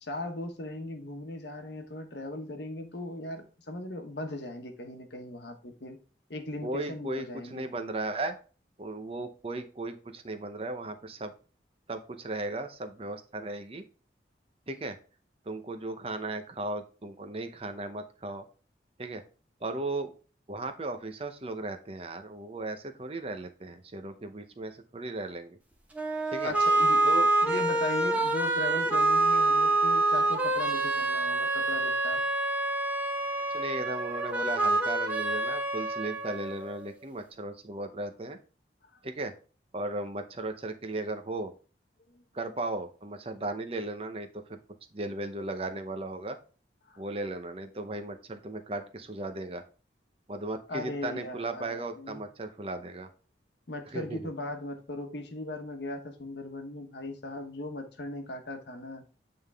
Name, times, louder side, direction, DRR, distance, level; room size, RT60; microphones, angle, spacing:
voice 1, 0.0-6.0 6.3-7.7 26.4-27.0 27.4-32.2 42.1-42.2 46.9-47.0 50.7-52.2 53.7-59.0, left 1 dB, 70° left, 1.2 m, -38 dB
voice 2, 6.6-8.4 8.8-11.3 11.9-13.8 14.7-15.0 15.5-18.4 19.0-19.2 19.6-20.1 20.5-25.6 26.3-26.5 27.0-27.3 28.9-29.0 33.5-38.4 39.0-39.3 39.7-41.5 42.3-44.6 44.9-46.4 47.0-49.6 50.3-53.1 53.9-54.2, right 2 dB, 30° right, 0.7 m, -36 dB
sound 1, 25.9-36.9, right 2 dB, 10° right, 1.0 m, -27 dB
8.7 x 3.7 x 3.4 m
head